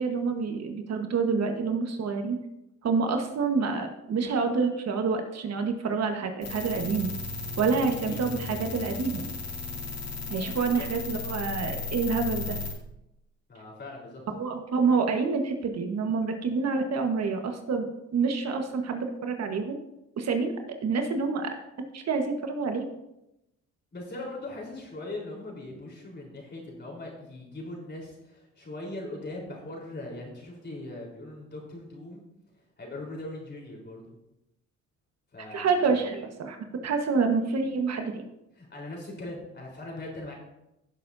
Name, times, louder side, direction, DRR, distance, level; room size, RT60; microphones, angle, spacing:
voice 1, 0.0-2.4 2.8-7.1 7.6-9.3 10.3-12.6 14.3-19.8 20.2-20.5 20.8-21.5 21.9-22.8 35.5-36.6 36.8-38.2, right 4 dB, 60° right, 5 dB, 1.4 m, -27 dB
sound 1, 6.4-12.7, left 4 dB, 55° left, 2.5 m, -35 dB
voice 2, 10.3-10.9 13.5-14.2 23.9-32.2 32.8-34.1 35.3-36.0 38.6-40.3, left 2 dB, 35° left, -1 dB, 3.9 m, -40 dB
16.5 x 7.1 x 2.7 m, 0.89 s
cardioid pair, 90°, 30 cm